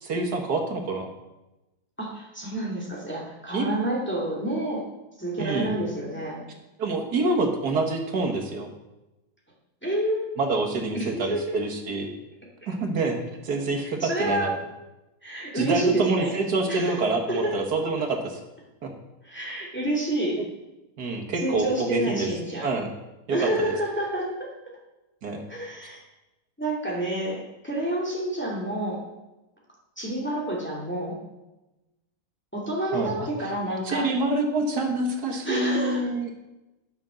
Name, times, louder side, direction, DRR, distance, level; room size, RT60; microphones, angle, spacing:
voice 1, 0.0-1.1 3.5-3.7 5.4-5.8 6.8-8.7 10.4-12.1 12.7-13.2 13.4-14.5 15.5-18.4 18.8-18.9 21.0-22.3 22.6-22.9 23.3-23.7 25.2-25.4 32.9-33.5 33.8-36.3, right 3 dB, 70° right, 3 dB, 2.1 m, -26 dB
voice 2, 2.0-4.8 5.2-6.4 9.8-10.4 10.9-11.5 13.8-14.5 15.2-16.3 16.7-17.0 17.3-17.6 19.2-20.4 21.4-22.7 23.3-24.5 25.5-26.0 26.6-27.4 27.6-29.0 30.0-31.2 32.5-34.1 35.4-36.1, right 1 dB, 5° left, -4 dB, 2.6 m, -28 dB
11.0 x 6.4 x 6.4 m, 0.99 s
omnidirectional pair, 1.8 m